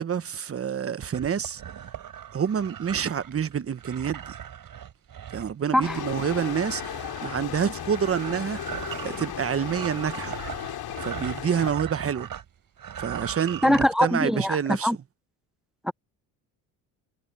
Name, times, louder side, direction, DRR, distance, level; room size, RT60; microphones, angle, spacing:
voice 1, 0.0-1.6 2.3-4.4 5.3-8.6 9.0-10.4 11.0-12.3 13.0-14.9, right 8 dB, 35° right, 1.2 m, -28 dB
sound 1, 1.0-12.5 12.8-13.9, right 9 dB, 50° right, 4.1 m, -39 dB
sound 2, 5.8-11.7, left 11 dB, 60° left, 3.4 m, -36 dB
sound 3, 5.9-11.6, left 5 dB, 30° left, 5.7 m, -51 dB
voice 2, 13.6-15.0 15.8-15.9, equal, ahead, 0.4 m, -22 dB
supercardioid pair, 85°, 43 cm